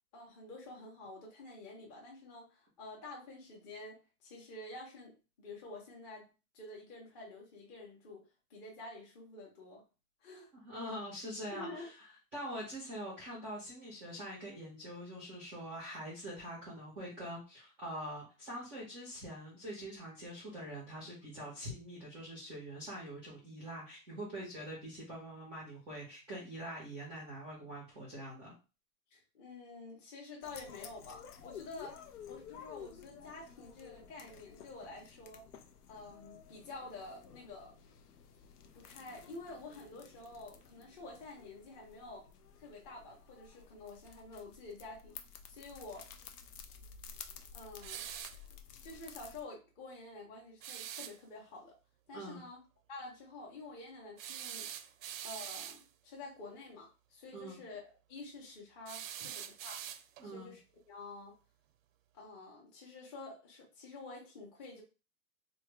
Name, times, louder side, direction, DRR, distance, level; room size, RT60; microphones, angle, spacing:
voice 1, 0.1-9.8 10.2-10.5 11.5-11.9 29.1-35.5 35.9-37.8 38.7-42.3 42.6-45.2 45.5-46.1 47.2-48.1 48.8-51.8 52.1-52.6 52.9-54.7 55.2-59.8 60.2-60.6 60.9-61.4 62.1-64.8, left 2 dB, 30° left, -2 dB, 0.8 m, -49 dB
voice 2, 10.6-11.9 12.3-28.5 52.1-52.4 57.3-57.6 60.2-60.5, equal, 5° right, -6 dB, 0.3 m, -44 dB
sound 1, 30.4-49.4, left 7 dB, 90° left, 0.7 m, -53 dB
sound 2, 47.8-48.4 50.6-51.2 54.2-55.8 58.9-60.3, right 10 dB, 60° right, 0.5 m, -44 dB
3.4 x 2.2 x 3.1 m, 0.31 s
hypercardioid pair, 160°, 45 cm